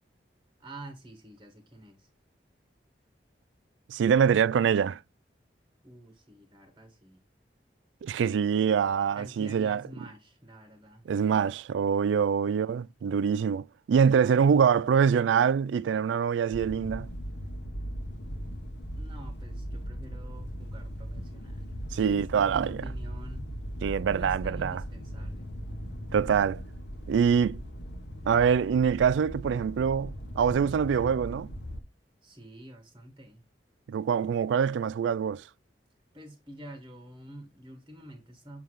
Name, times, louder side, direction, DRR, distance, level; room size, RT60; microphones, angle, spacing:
voice 1, 0.6-2.1 5.8-7.2 9.1-11.0 12.4-12.8 14.2-14.9 18.6-18.7 18.9-21.7 22.0-23.5 24.0-25.5 32.2-33.4 36.1-38.6, right 1 dB, 20° right, 1.3 m, -47 dB
voice 2, 3.9-5.0 8.0-9.8 11.1-17.1 21.9-22.9 23.8-24.8 26.1-26.6 27.1-27.6 28.3-31.5 33.9-35.4, right 7 dB, 85° right, 0.3 m, -25 dB
sound 1, 16.5-31.8, equal, 70° left, 1.2 m, -39 dB
7.0 x 5.7 x 3.1 m
head